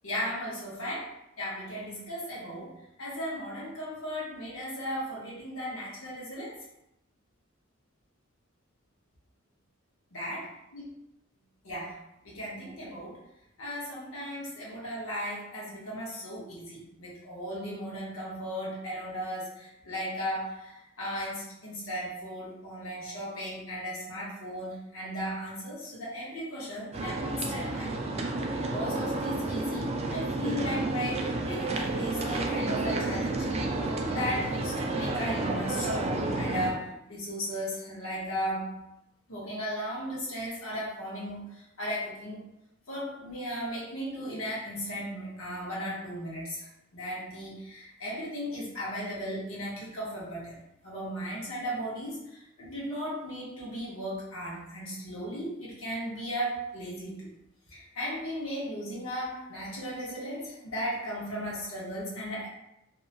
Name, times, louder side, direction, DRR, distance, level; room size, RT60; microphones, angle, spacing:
voice 1, 0.0-6.5 10.1-10.4 10.7-10.9 11.6-12.0 12.2-13.2 13.6-27.9 28.5-33.5 34.1-38.8 39.3-42.4 42.9-57.3 57.7-62.5, equal, 80° left, -6 dB, 1.1 m, -36 dB
sound 1, 26.9-36.7, right 2 dB, 30° right, 0.3 m, -31 dB
2.7 x 2.1 x 2.8 m, 0.85 s
head